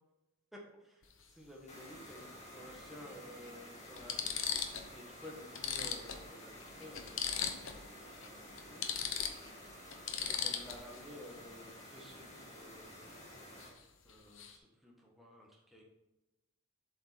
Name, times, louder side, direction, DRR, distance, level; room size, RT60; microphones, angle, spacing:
voice 1, 0.5-4.3 4.9-8.8 9.2-9.6 10.2-13.1 14.0-15.8, left 1 dB, ahead, -2 dB, 1.4 m, -54 dB
sound 1, 1.0-1.2 2.7-2.8 3.5-3.6 4.0-4.9 5.2-5.3 5.5-7.8 8.1-8.3 8.6-11.0 13.6-13.8 14.1-14.6, left 7 dB, 70° left, 0.8 m, -38 dB
sound 2, 1.7-13.7, equal, 30° left, 1.7 m, -52 dB
7.5 x 5.3 x 4.2 m, 1.0 s
head